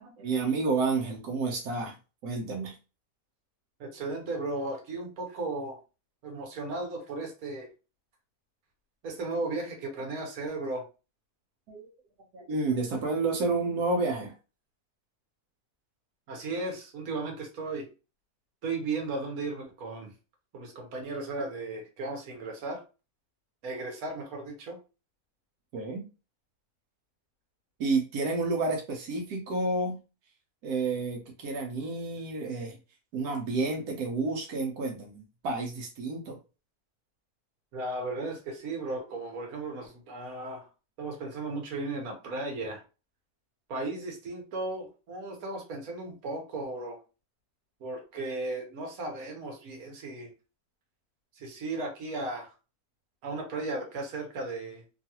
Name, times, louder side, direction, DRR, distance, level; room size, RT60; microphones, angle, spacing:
voice 1, 0.0-1.9 2.2-2.7 11.7-11.8 12.3-14.3 25.7-26.0 27.8-30.0 30.6-32.8 33.1-36.4, right 3 dB, 90° right, 0 dB, 1.2 m, -30 dB
voice 2, 3.8-5.8 6.2-7.7 9.0-10.9 16.3-17.9 18.6-20.1 20.5-22.8 23.6-24.8 37.7-40.7 41.0-42.8 43.7-47.0 47.8-50.3 51.4-52.5 53.2-54.8, right 2 dB, 75° right, 2 dB, 1.3 m, -35 dB
3.1 x 2.4 x 2.8 m, 0.32 s
omnidirectional pair, 1.6 m